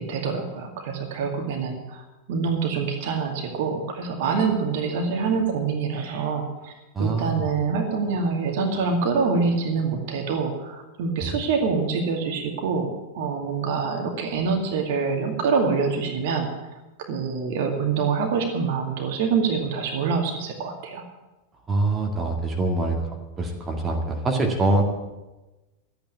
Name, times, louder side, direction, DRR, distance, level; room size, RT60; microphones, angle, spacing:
voice 1, 0.0-6.7 7.0-16.5 17.0-21.0, right 5 dB, 50° right, 3 dB, 2.2 m, -25 dB
voice 2, 6.9-7.5 11.2-11.4 21.7-23.0 23.4-24.8, right 2 dB, 20° right, 1 dB, 2.0 m, -24 dB
13.0 x 8.9 x 8.3 m, 1.1 s
figure-of-eight pair, 90°, 0 cm